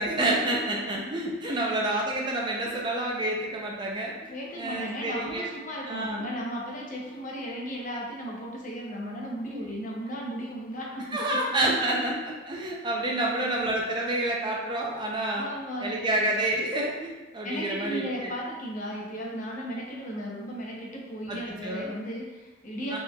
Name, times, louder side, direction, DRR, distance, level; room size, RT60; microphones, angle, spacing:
voice 1, 0.0-4.1 4.6-5.5 5.9-6.3 9.5-9.7 11.1-15.5 15.8-18.3 21.3-21.9 22.9-23.0, right 1 dB, 25° right, -1 dB, 0.4 m, -28 dB
voice 2, 1.4-1.8 4.3-11.4 15.3-16.2 17.4-23.0, equal, 45° left, -2 dB, 0.7 m, -35 dB
4.3 x 3.1 x 2.3 m, 1.1 s
head